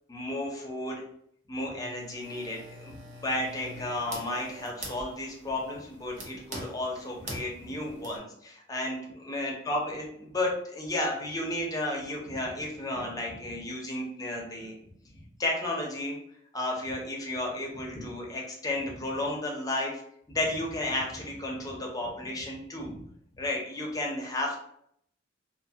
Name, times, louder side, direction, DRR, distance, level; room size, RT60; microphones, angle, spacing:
voice 1, 0.1-1.0 1.5-14.8 15.4-16.2 16.5-19.9 20.3-23.0 23.3-24.6, left 1 dB, 20° left, -1 dB, 0.5 m, -33 dB
sound 1, 1.8-8.2, right 1 dB, 40° right, 0.6 m, -44 dB
2.6 x 2.2 x 2.7 m, 0.69 s
head